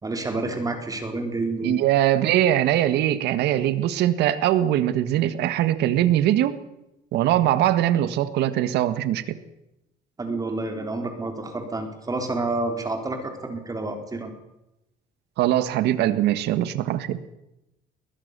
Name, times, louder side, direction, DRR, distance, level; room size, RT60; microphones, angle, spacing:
voice 1, 0.0-1.8 10.2-14.3, right 2 dB, 20° right, 5 dB, 4.2 m, -29 dB
voice 2, 1.6-6.6 7.1-9.4 15.4-17.2, right 12 dB, 80° right, 13 dB, 1.7 m, -21 dB
22.0 x 19.0 x 6.8 m, 0.90 s
cardioid pair, 110°, 17 cm